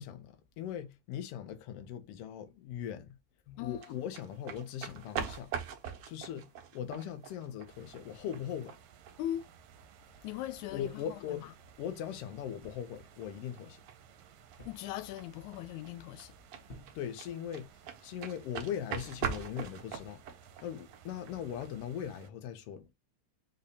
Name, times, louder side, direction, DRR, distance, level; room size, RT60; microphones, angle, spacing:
voice 1, 0.0-3.2 3.6-5.5 6.1-8.7 10.7-11.5 11.8-13.8 16.9-17.7 18.0-20.2 20.6-22.9, left 9 dB, 65° left, 1.6 m, -40 dB
voice 2, 3.5-4.0 9.2-9.5 10.2-11.6 14.7-16.4, left 12 dB, 90° left, 2.0 m, -40 dB
sound 1, 3.8-21.7, right 8 dB, 65° right, 1.6 m, -44 dB
sound 2, 7.7-22.3, right 8 dB, 80° right, 2.0 m, -58 dB
sound 3, 12.6-13.1 14.6-15.0 15.3-15.7 16.7-17.2 17.9-18.3 19.1-19.8 20.7-21.0, equal, 40° left, 0.8 m, -52 dB
5.2 x 2.3 x 4.1 m
omnidirectional pair, 3.3 m